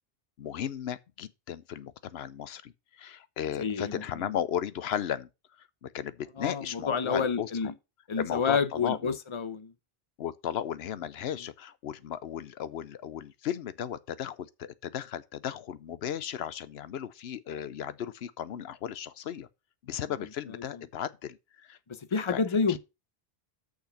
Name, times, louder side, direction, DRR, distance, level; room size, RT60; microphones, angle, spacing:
voice 1, 0.4-5.3 5.6-7.7 8.2-9.2 10.2-19.5 19.8-21.8 22.3-22.4 22.7-22.8, left 9 dB, 90° left, 0.9 m, -35 dB
voice 2, 3.6-4.0 6.4-7.7 8.1-9.7 22.1-22.8, left 5 dB, 30° left, 0.8 m, -29 dB
6.5 x 5.8 x 5.6 m
omnidirectional pair, 1.0 m